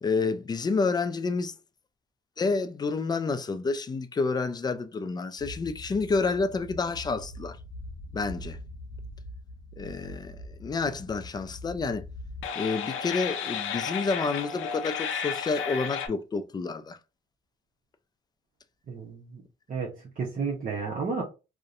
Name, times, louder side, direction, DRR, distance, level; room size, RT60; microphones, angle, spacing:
voice 1, 0.0-1.5 2.4-7.6 8.1-8.6 9.8-12.1 12.6-17.0, left 4 dB, 20° left, 0.3 m, -29 dB
sound 1, 5.4-16.1, left 6 dB, 85° left, 0.5 m, -36 dB
voice 2, 18.9-19.4 19.7-21.2, right 5 dB, 45° right, 0.7 m, -32 dB
2.6 x 2.1 x 2.4 m
cardioid pair, 90°, 20 cm